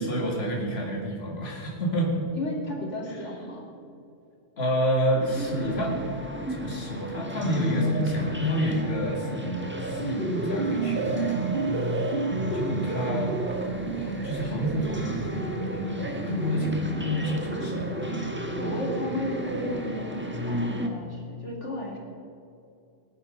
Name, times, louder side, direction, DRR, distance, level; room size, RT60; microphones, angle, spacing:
voice 1, 0.0-2.2 3.1-3.3 4.6-6.0 6.5-11.6 12.5-13.4 13.9-16.8 17.2-18.0, right 1 dB, 60° left, -1 dB, 2.5 m, -29 dB
voice 2, 2.3-3.7 18.6-22.0, left 1 dB, 85° left, 0 dB, 2.9 m, -34 dB
sound 1, 5.2-20.9, left 1 dB, 10° right, 1.3 m, -32 dB
sound 2, 9.4-20.0, right 4 dB, 55° right, 1.2 m, -32 dB
18.0 x 10.5 x 5.3 m, 2.6 s
omnidirectional pair, 1.2 m